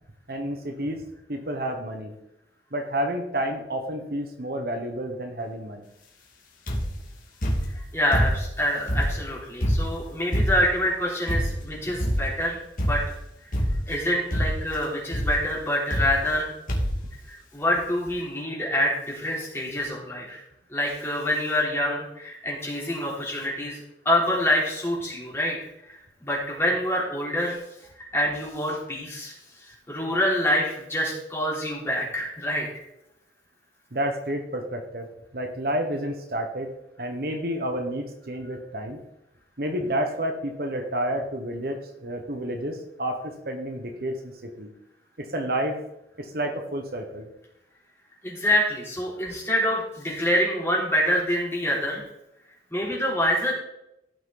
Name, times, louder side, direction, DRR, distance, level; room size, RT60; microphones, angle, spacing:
voice 1, 0.3-1.0 1.3-2.1 2.7-5.8 33.9-36.7 37.0-39.0 39.6-44.7 45.2-45.8 46.2-47.3, right 1 dB, 55° right, 5 dB, 1.3 m, -30 dB
sound 1, 6.7-7.0 7.4-8.6 8.9-10.8 11.3-11.7 12.0-12.4 12.8-13.2 13.5-14.0 14.3-14.7 15.1-15.4 15.9-16.4 16.7-17.1 17.8-17.9 18.1-18.2, equal, 50° left, 2.3 m, -26 dB
voice 2, 7.7-13.0 13.9-16.5 17.3-20.4 20.7-25.6 25.9-27.6 28.1-29.3 29.6-32.7 48.2-52.1 52.7-53.5, left 1 dB, 15° left, -4 dB, 3.5 m, -26 dB
15.5 x 6.3 x 4.0 m, 0.85 s
head